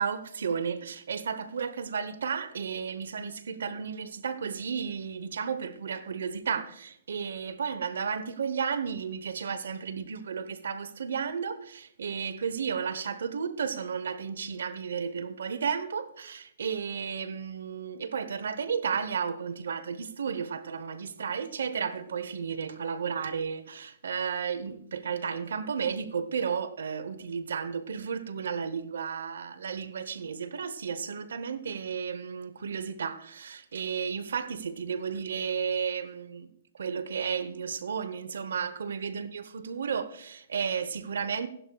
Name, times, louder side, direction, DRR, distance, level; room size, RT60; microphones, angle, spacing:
voice 1, 0.0-36.5 36.7-41.5, right 6 dB, 80° right, 0.9 m, -33 dB
15.5 x 11.5 x 2.3 m
hypercardioid pair, 145°, 0 cm